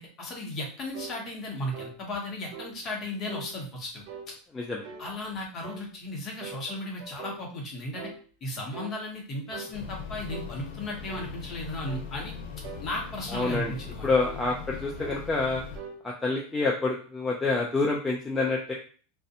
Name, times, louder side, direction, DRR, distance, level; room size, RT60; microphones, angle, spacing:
voice 1, 0.0-4.0 5.0-8.1 8.4-12.4 12.8-14.1, left 1 dB, 30° left, -1 dB, 0.8 m, -35 dB
sound 1, 0.9-1.2 1.7-2.0 2.5-2.7 3.3-3.5 4.1-4.3 4.8-5.1 5.6-5.9 6.4-7.4 7.9-8.2 8.7-9.0 9.5-9.7 10.3-10.5 11.1-11.3 11.9-12.1 12.6-12.9 13.4-13.7 14.2-14.4 15.0-15.2 15.7-16.0, right 5 dB, 50° right, 0.5 m, -42 dB
sound 2, 9.7-15.8, left 6 dB, 65° left, 0.8 m, -40 dB
voice 2, 13.3-13.7 14.0-15.6 16.0-18.7, left 3 dB, 10° left, -2 dB, 0.3 m, -27 dB
2.5 x 2.1 x 2.7 m, 0.41 s
supercardioid pair, 160°, 0 cm